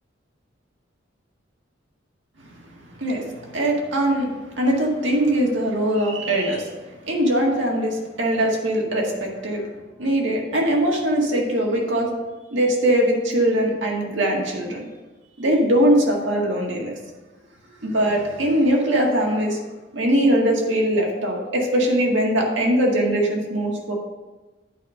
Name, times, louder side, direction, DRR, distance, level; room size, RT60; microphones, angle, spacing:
voice 1, 2.8-6.7 7.1-9.6 10.0-12.1 12.5-14.8 15.4-17.0 17.8-19.6 19.9-23.9, right 1 dB, 85° right, -1 dB, 1.9 m, -21 dB
9.3 x 5.0 x 5.5 m, 1.2 s
head